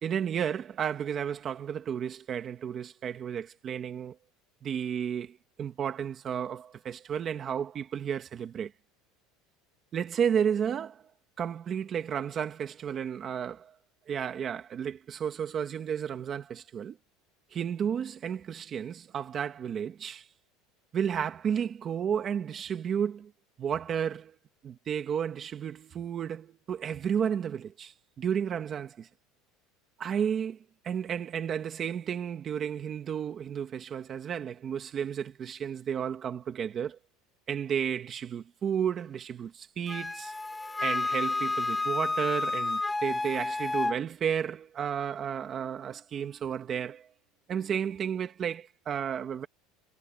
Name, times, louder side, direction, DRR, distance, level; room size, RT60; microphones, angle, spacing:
voice 1, 0.0-4.2 4.6-8.7 9.9-11.0 11.4-13.7 14.1-17.0 17.5-20.3 20.9-23.3 23.6-24.3 24.6-29.1 30.0-30.6 30.8-37.0 37.5-40.3 40.8-47.1 47.5-49.5, right 8 dB, 25° right, 1.6 m, -32 dB
Wind instrument woodwind instrument, 39.9-44.0, left 3 dB, 10° left, 0.9 m, -30 dB
cardioid pair, 170°, 0 cm